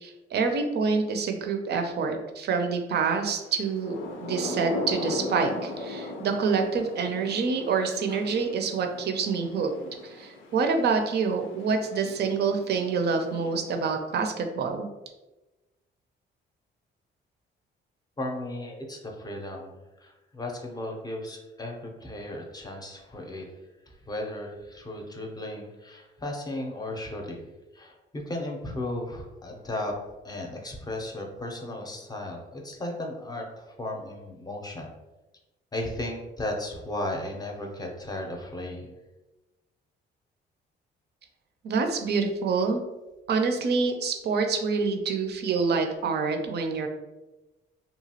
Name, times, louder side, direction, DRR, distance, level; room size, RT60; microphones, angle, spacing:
voice 1, 0.0-9.7 10.0-14.9 41.6-42.8 43.3-46.9, right 5 dB, 55° right, 5 dB, 0.5 m, -27 dB
Thunder / Rain, 3.6-14.1, left 2 dB, 80° left, 0.5 m, -38 dB
voice 2, 18.2-23.5 24.1-27.5 27.7-30.0 30.2-34.9 35.7-38.9, left 1 dB, 20° left, 1 dB, 0.6 m, -35 dB
2.9 x 2.3 x 2.8 m, 1.1 s
cardioid pair, 90°, 20 cm